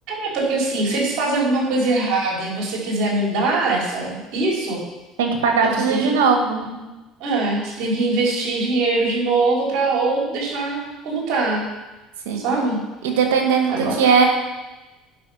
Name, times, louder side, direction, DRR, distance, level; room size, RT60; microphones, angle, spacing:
voice 1, 0.1-4.8 5.6-6.1 6.6-6.9 7.2-11.7 12.4-12.8 13.7-14.0, right 2 dB, 65° right, -2 dB, 3.9 m, -22 dB
voice 2, 5.2-6.6 12.2-12.4 13.0-14.3, right 5 dB, 85° right, 3 dB, 1.6 m, -18 dB
11.0 x 5.5 x 5.6 m, 1.1 s
supercardioid pair, 80°, 0 cm